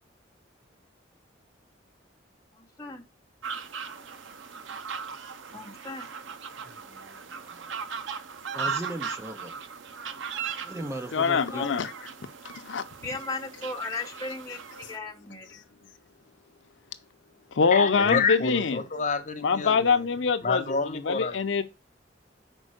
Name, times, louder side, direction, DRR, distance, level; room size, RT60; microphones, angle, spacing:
voice 1, 2.5-3.0 5.5-6.1 11.3-11.7 13.0-15.6, left 3 dB, 20° left, 1.2 m, -36 dB
sound 1, 3.4-15.0, right 6 dB, 75° right, 0.6 m, -38 dB
voice 2, 6.7-7.6 8.5-9.6 10.6-11.8, right 1 dB, 15° right, 0.7 m, -38 dB
voice 3, 11.1-11.9 12.7-12.8 17.5-18.8 19.4-20.6 21.1-21.6, left 5 dB, 70° left, 0.6 m, -24 dB
voice 4, 17.7-20.1 20.4-21.4, left 5 dB, 40° left, 1.1 m, -28 dB
5.4 x 4.4 x 6.3 m
head